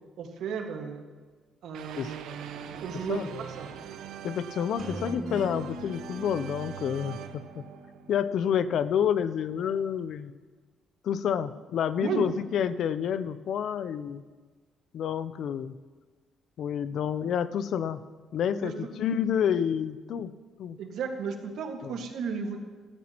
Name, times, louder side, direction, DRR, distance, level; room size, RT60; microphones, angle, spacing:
voice 1, 0.2-1.0 1.6-2.4 2.8-3.7 12.0-12.3 18.6-18.7 20.8-22.6, right 6 dB, 75° right, 3 dB, 1.7 m, -34 dB
sound 1, 1.7-8.7, right 9 dB, 90° right, 0.8 m, -42 dB
voice 2, 4.2-7.4 8.1-10.4 11.0-14.2 14.9-15.7 16.6-18.0 18.3-20.3 20.6-20.8 21.8-21.9, left 8 dB, 60° left, 14 dB, 0.5 m, -29 dB
sound 2, 4.8-8.6, right 1 dB, 40° right, 4.1 m, -41 dB
17.0 x 13.5 x 3.0 m, 1.4 s
cardioid pair, 135°, 0 cm